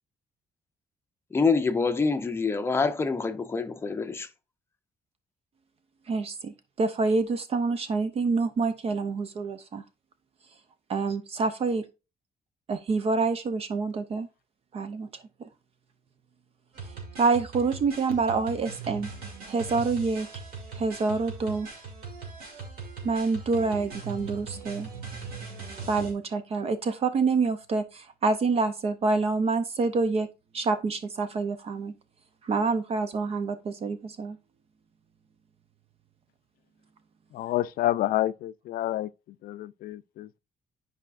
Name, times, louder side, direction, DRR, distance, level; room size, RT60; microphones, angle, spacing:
voice 1, 1.3-4.3, left 4 dB, 15° left, 0.6 m, -26 dB
voice 2, 6.1-9.8 10.9-11.8 12.7-14.3 14.7-15.1 17.2-19.1 19.5-20.3 20.8-21.7 23.0-24.9 25.9-30.3 30.5-31.9 32.4-34.4, right 4 dB, 40° right, 0.6 m, -27 dB
sound 1, 16.7-26.1, right 4 dB, 75° right, 2.7 m, -40 dB
voice 3, 37.3-39.1 39.4-40.4, left 14 dB, 70° left, 0.4 m, -28 dB
10.5 x 4.9 x 2.5 m
cardioid pair, 170°, 15 cm